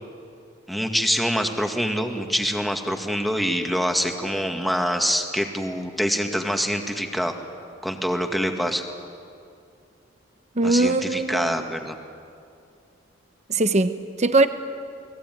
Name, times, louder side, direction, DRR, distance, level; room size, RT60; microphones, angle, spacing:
voice 1, 0.7-7.3 7.8-8.8 10.6-12.0, equal, ahead, 4 dB, 2.0 m, -25 dB
voice 2, 10.6-11.6 13.5-14.5, right 2 dB, 35° right, 10 dB, 1.0 m, -21 dB
29.5 x 21.0 x 9.4 m, 2.5 s
head